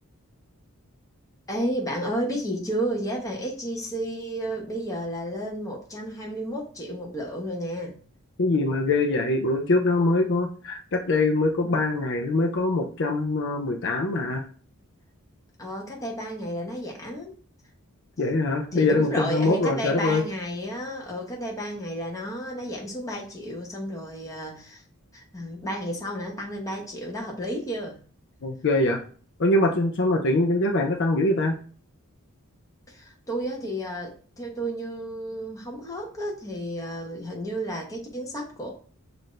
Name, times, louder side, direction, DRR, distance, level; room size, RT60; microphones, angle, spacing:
voice 1, 1.5-8.0 15.6-17.3 18.7-24.8 25.1-28.0 32.9-38.7, equal, 15° left, -1 dB, 1.0 m, -32 dB
voice 2, 8.4-14.4 18.2-20.2 28.4-29.0 29.4-31.5, left 2 dB, 55° left, 3 dB, 0.5 m, -23 dB
5.7 x 2.6 x 3.2 m, 0.43 s
head